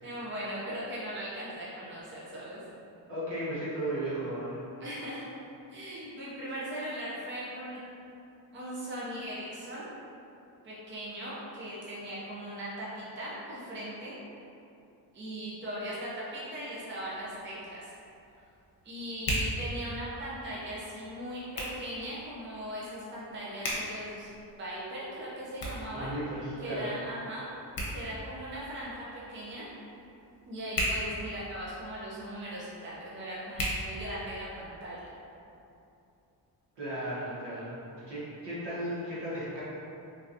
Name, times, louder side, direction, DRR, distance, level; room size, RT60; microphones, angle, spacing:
voice 1, 0.0-2.6 4.8-5.3 5.7-7.8 8.5-9.9 10.6-14.2 15.1-17.9 18.8-24.3 24.6-26.1 26.6-27.5 27.9-29.7 30.5-35.0, equal, 30° right, -7 dB, 0.5 m, -39 dB
voice 2, 3.1-4.6 25.9-26.9 36.8-39.6, right 1 dB, 75° right, -9 dB, 1.2 m, -35 dB
Hands, 17.0-34.6, equal, 55° left, 0.8 m, -40 dB
3.3 x 2.7 x 2.5 m, 2.7 s
wide cardioid pair, 135°, 41 cm